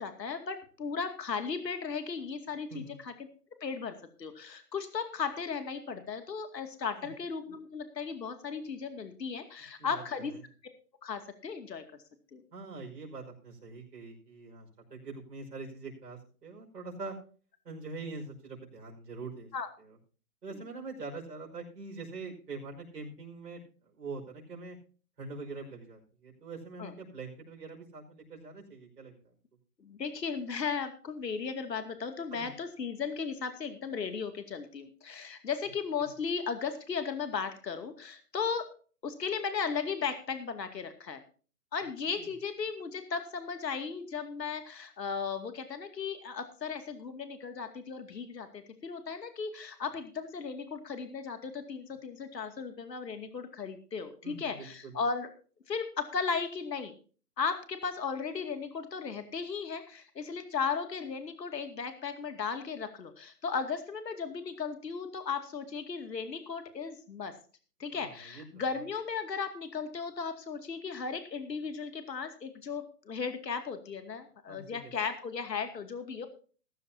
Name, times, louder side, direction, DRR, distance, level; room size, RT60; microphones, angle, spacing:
voice 1, 0.0-3.1 3.6-10.3 11.0-11.8 12.3-12.4 19.5-19.7 26.8-26.9 29.8-38.7 39.0-41.2 41.7-55.3 55.7-56.9 57.4-67.3 67.8-76.3, left 5 dB, 85° left, 8 dB, 2.5 m, -36 dB
voice 2, 12.5-17.1 17.6-19.5 19.8-20.0 20.4-23.6 24.0-24.8 25.2-29.1 32.3-32.5 36.0-36.1 42.2-42.3 54.2-55.0 67.9-68.6 74.5-74.8, right 3 dB, 70° right, -1 dB, 5.5 m, -44 dB
16.0 x 14.0 x 2.8 m, 0.40 s
hypercardioid pair, 170°, 49 cm